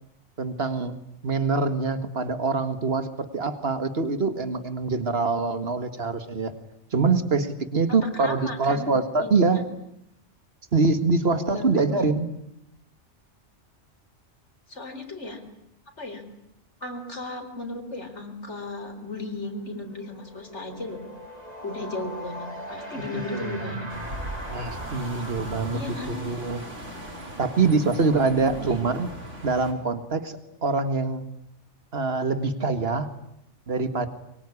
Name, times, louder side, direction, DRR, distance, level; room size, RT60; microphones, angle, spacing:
voice 1, 0.4-1.0 1.2-6.5 6.9-9.6 10.7-12.3 23.1-23.8 24.5-26.6 27.4-29.1 29.4-31.3 31.9-33.1 33.7-34.1, right 4 dB, 55° right, 10 dB, 2.2 m, -24 dB
voice 2, 8.0-8.9 9.2-9.3 11.5-12.1 14.7-15.4 16.0-16.2 16.8-21.0 21.6-23.9 25.7-26.1 28.6-28.9, left 2 dB, 70° left, 5 dB, 4.4 m, -35 dB
sound 1, 19.2-29.7, equal, 35° right, 3.9 m, -42 dB
sound 2, 23.9-29.7, right 1 dB, 85° right, 5.4 m, -39 dB
24.0 x 23.5 x 9.9 m, 0.80 s
omnidirectional pair, 1.2 m